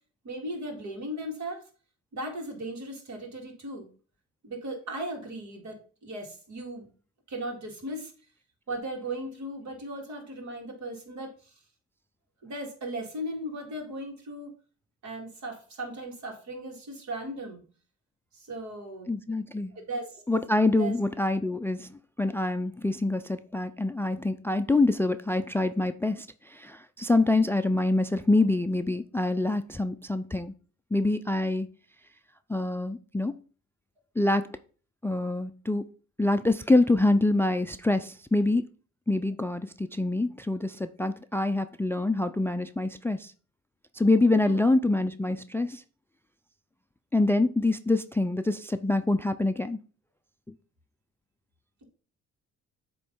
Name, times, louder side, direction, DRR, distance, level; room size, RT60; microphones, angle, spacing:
voice 1, 0.2-1.6 2.1-3.9 4.4-6.9 7.3-8.1 8.7-11.5 12.4-14.5 15.0-17.6 18.3-19.1 19.7-20.2 20.8-20.9 44.4-44.6, right 1 dB, 70° right, 2.1 m, -37 dB
voice 2, 19.1-19.7 20.3-30.5 30.9-31.7 32.5-33.4 34.2-34.5 35.0-35.9 36.2-38.6 39.1-43.3 43.9-45.8 47.1-49.8, left 2 dB, 10° left, 0.3 m, -25 dB
7.8 x 3.1 x 5.3 m
cardioid pair, 90°, 30 cm